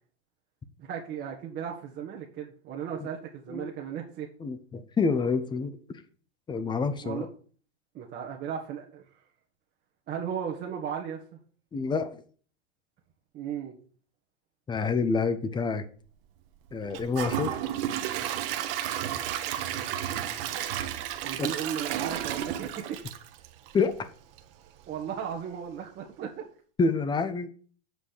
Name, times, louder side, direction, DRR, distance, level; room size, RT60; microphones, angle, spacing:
voice 1, 0.8-4.3 7.0-7.3 7.9-9.0 10.1-11.4 13.3-13.7 21.2-23.0 24.9-26.4, right 8 dB, 30° right, -1 dB, 1.6 m, -35 dB
voice 2, 4.4-5.8 6.5-7.3 11.7-12.2 14.7-15.8 16.7-17.6 23.7-24.1 26.8-27.5, left 4 dB, 15° left, 11 dB, 0.8 m, -27 dB
Gurgling / Toilet flush / Trickle dribble, 16.9-24.0 24.4-24.5 25.0-25.1, right 11 dB, 55° right, 1.2 m, -32 dB
7.8 x 5.1 x 6.6 m, 0.44 s
hypercardioid pair, 120°, 33 cm